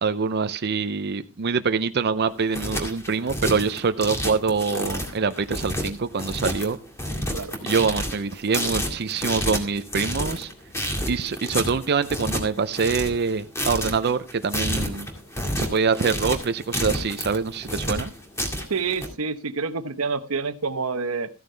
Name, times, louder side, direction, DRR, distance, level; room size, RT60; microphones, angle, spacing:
voice 1, 0.0-6.8 7.6-10.5 11.1-15.1 15.5-18.1, right 5 dB, 50° right, 10 dB, 0.5 m, -25 dB
sound 1, 2.3-19.1, equal, 15° left, 2.0 m, -29 dB
voice 2, 18.7-21.3, right 4 dB, 80° right, 11 dB, 0.9 m, -28 dB
14.0 x 9.1 x 3.3 m, 0.32 s
head